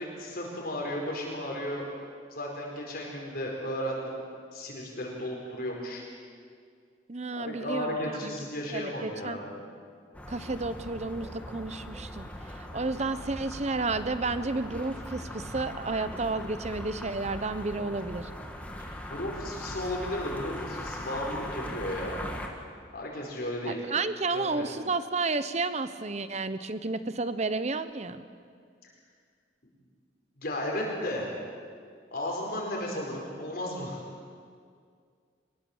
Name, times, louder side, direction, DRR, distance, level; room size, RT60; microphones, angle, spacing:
voice 1, 0.0-1.9 2.3-4.2 4.5-6.0 7.3-9.4 12.8-13.0 18.8-22.2 22.9-23.8 24.3-24.7 28.8-28.9 30.4-31.3 32.1-34.0, left 1 dB, 55° left, -1 dB, 4.8 m, -34 dB
voice 2, 7.1-8.0 8.2-8.3 8.7-9.4 10.3-12.3 12.7-18.3 23.7-28.2, right 3 dB, 40° right, 12 dB, 1.0 m, -31 dB
sound 1, 10.1-22.5, left 1 dB, 10° left, 2.1 m, -40 dB
23.5 x 21.0 x 7.4 m, 2.1 s
head